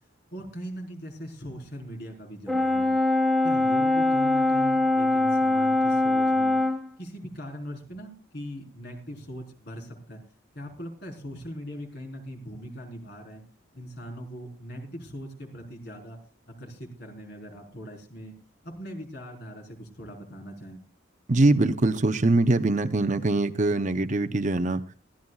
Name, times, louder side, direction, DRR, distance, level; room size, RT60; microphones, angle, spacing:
voice 1, 0.3-2.9 3.4-6.6 7.0-10.2 10.5-13.4 13.7-16.2 16.5-18.3 18.6-20.8, equal, 55° left, 2 dB, 4.2 m, -40 dB
Brass instrument, 2.5-6.9, left 2 dB, ahead, 1.2 m, -22 dB
voice 2, 21.3-24.8, right 2 dB, 40° right, 9 dB, 0.7 m, -23 dB
21.5 x 14.5 x 2.4 m, 0.35 s
head